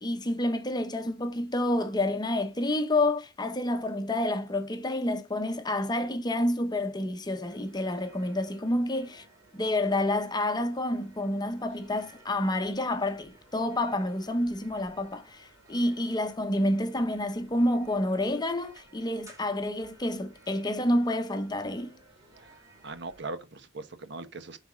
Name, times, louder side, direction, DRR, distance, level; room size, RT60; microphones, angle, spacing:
voice 1, 0.0-9.2 9.5-22.0, left 1 dB, 20° left, 0.8 m, -29 dB
sound 1, 7.4-23.3, right 2 dB, 20° right, 3.5 m, -57 dB
voice 2, 22.8-24.6, right 3 dB, 65° right, 1.2 m, -39 dB
10.0 x 4.1 x 6.0 m
head